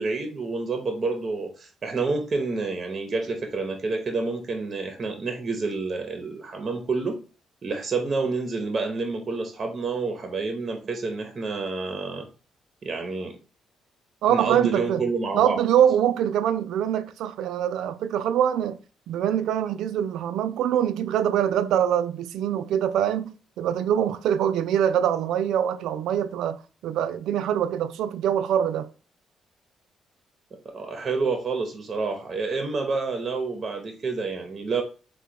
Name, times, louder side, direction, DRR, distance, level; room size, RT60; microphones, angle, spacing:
voice 1, 0.0-7.2 7.6-12.3 12.8-13.4 14.3-15.6 30.7-34.8, right 4 dB, 40° right, 0.7 m, -28 dB
voice 2, 14.2-15.0 15.3-18.8 19.1-28.9, right 9 dB, 85° right, 0.3 m, -24 dB
3.7 x 2.2 x 4.4 m
cardioid pair, 90°, 0 cm